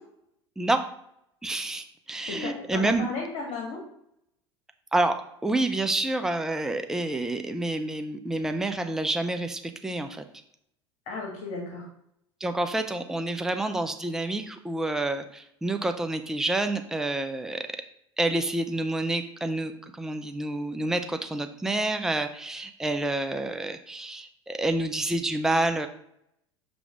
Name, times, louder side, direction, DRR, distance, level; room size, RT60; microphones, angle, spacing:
voice 1, 1.4-3.1 4.9-5.2 5.4-10.3 12.4-17.8 18.2-25.9, right 2 dB, 5° right, 7 dB, 0.5 m, -28 dB
voice 2, 2.3-3.8 11.1-11.9, left 4 dB, 50° left, 0 dB, 1.7 m, -34 dB
6.1 x 3.4 x 4.9 m, 0.73 s
figure-of-eight pair, 75°, 15 cm